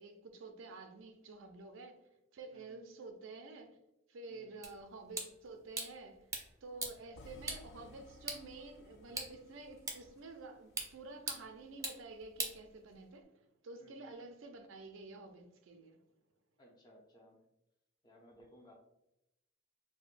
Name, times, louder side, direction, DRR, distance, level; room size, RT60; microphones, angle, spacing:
voice 1, 0.0-2.0 2.3-3.8 4.1-6.3 6.6-16.0, right 3 dB, 75° right, 0.5 m, -50 dB
sound 1, 4.6-13.2, right 3 dB, 15° right, 0.6 m, -45 dB
sound 2, 7.1-11.3, left 1 dB, 60° left, 0.4 m, -59 dB
voice 2, 16.6-17.4 18.0-18.7, equal, 20° left, 0.7 m, -61 dB
4.8 x 2.1 x 2.5 m
head